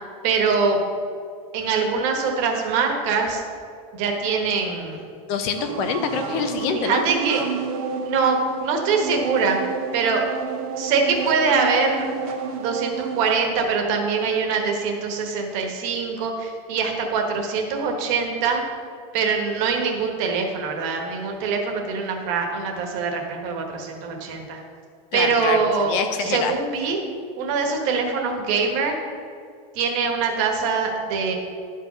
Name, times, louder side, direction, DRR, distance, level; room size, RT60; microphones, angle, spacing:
voice 1, 0.2-0.8 1.5-3.4 3.9-5.0 6.7-7.4 8.0-9.6 9.9-10.2 10.8-12.1 12.6-18.6 19.1-24.6 25.1-27.0 27.4-29.0 29.7-31.3, right 5 dB, 40° right, 3 dB, 1.3 m, -23 dB
voice 2, 5.3-7.0 25.1-26.5, left 6 dB, 35° left, 8 dB, 0.5 m, -26 dB
sound 1, 5.6-13.3, right 6 dB, 80° right, 1.3 m, -30 dB
11.5 x 4.7 x 5.7 m, 2.3 s
supercardioid pair, 180°, 18 cm